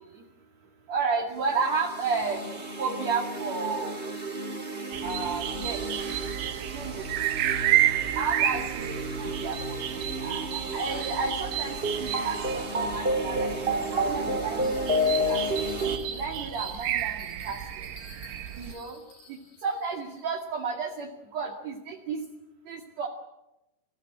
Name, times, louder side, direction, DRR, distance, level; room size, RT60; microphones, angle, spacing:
voice 1, 0.9-2.5 2.8-4.0 5.0-5.8 6.6-7.0 8.1-13.5 13.9-15.0 15.3-15.7 16.1-17.9 18.6-19.0 19.6-22.2 22.7-23.1, right 4 dB, 45° right, 0 dB, 2.8 m, -32 dB
sound 1, 1.6-16.0, right 1 dB, 25° right, 1.3 m, -31 dB
sound 2, 4.9-18.8, right 13 dB, 75° right, 3.4 m, -31 dB
Bell, 14.6-20.2, left 3 dB, 50° left, 7.6 m, -52 dB
28.0 x 16.5 x 10.0 m, 0.95 s
omnidirectional pair, 5.3 m